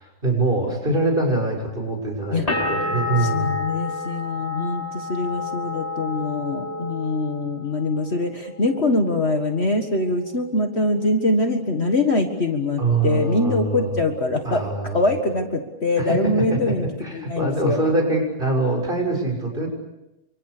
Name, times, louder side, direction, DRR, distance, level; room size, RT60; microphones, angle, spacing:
voice 1, 0.0-3.6 12.8-13.9 14.4-15.0 16.0-19.7, right 2 dB, 35° right, 2 dB, 7.0 m, -24 dB
sound 1, 2.5-8.1 8.4-9.2, left 3 dB, 25° left, 6.1 m, -29 dB
voice 2, 3.2-17.8, left 2 dB, 45° left, 5 dB, 2.0 m, -23 dB
29.5 x 25.5 x 6.7 m, 0.93 s
omnidirectional pair, 1.6 m